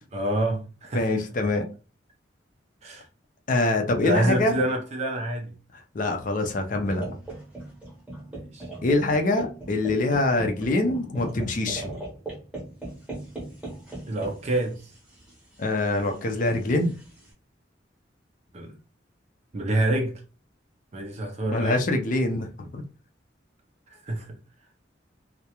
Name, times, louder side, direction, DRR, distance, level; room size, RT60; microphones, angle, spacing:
voice 1, 0.1-1.2 2.8-3.0 4.0-5.5 8.3-8.7 14.1-14.8 18.5-18.7 19.5-20.2 20.9-21.8 23.9-24.4, right 1 dB, 35° right, 0.4 m, -27 dB
voice 2, 0.9-1.6 3.5-4.6 5.9-7.2 8.8-12.0 15.6-16.9 21.5-22.8, left 2 dB, 45° left, 0.4 m, -24 dB
sound 1, 6.9-17.3, right 2 dB, 5° right, 0.7 m, -40 dB
2.3 x 2.0 x 2.8 m
head